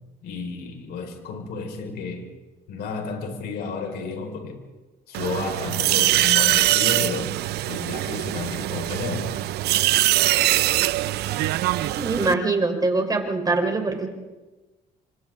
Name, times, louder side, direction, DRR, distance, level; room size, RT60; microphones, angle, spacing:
voice 1, 0.2-2.3 2.7-4.6 5.1-7.3 7.6-9.3, left 4 dB, 70° left, 3 dB, 4.7 m, -32 dB
sound 1, 5.1-12.3, right 15 dB, 75° right, 0.6 m, -22 dB
voice 2, 11.9-14.1, right 3 dB, 20° right, 3 dB, 4.0 m, -23 dB
29.5 x 26.0 x 3.8 m, 1.2 s
cardioid pair, 110°, 17 cm